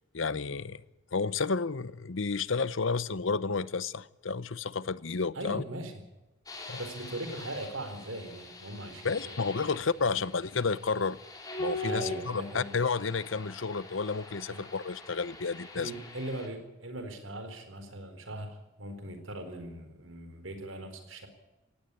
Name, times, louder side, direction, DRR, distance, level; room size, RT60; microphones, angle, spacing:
voice 1, 0.1-0.8 1.1-5.6 6.7-6.8 9.0-11.2 11.6-15.9, left 4 dB, 70° left, 0.8 m, -31 dB
voice 2, 5.3-5.9 6.8-9.3 9.6-9.7 10.1-10.2 11.8-12.7 14.5-14.6 15.8-21.3, right 1 dB, 70° right, 4.3 m, -40 dB
sound 1, 6.5-16.5, left 1 dB, 20° left, 4.7 m, -43 dB
18.5 x 16.5 x 9.9 m
head